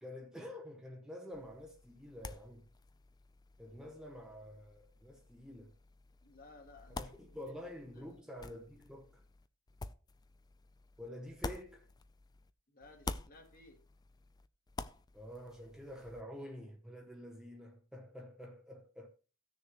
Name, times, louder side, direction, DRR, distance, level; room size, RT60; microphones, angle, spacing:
voice 1, 0.0-2.7 3.6-5.7 6.9-9.2 11.0-11.9 15.1-19.1, left 1 dB, 5° right, 0.7 m, -48 dB
sound 1, 1.3-12.5 12.8-16.2, left 3 dB, 20° left, 0.3 m, -49 dB
voice 2, 6.2-7.6 7.9-8.2 12.7-13.8, left 2 dB, 40° left, 1.8 m, -58 dB
16.0 x 6.6 x 2.9 m
head